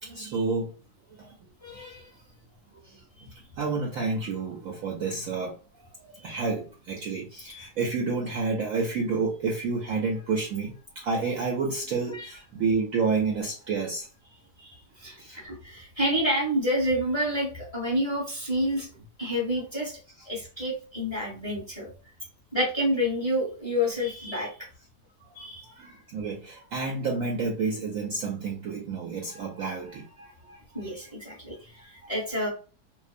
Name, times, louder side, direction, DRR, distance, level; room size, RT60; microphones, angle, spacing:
voice 1, 0.0-0.7 1.1-1.3 2.7-3.3 3.6-5.6 6.0-14.1 15.2-15.5 25.6-30.9 31.8-32.1, right 4 dB, 70° right, -1 dB, 0.8 m, -30 dB
voice 2, 1.6-2.1 7.5-7.7 12.1-12.3 14.6-18.9 19.2-19.9 20.3-21.9 22.5-24.5 25.3-25.6 30.7-32.5, equal, 20° left, -3 dB, 0.9 m, -29 dB
2.8 x 2.1 x 2.4 m, 0.36 s
omnidirectional pair, 1.8 m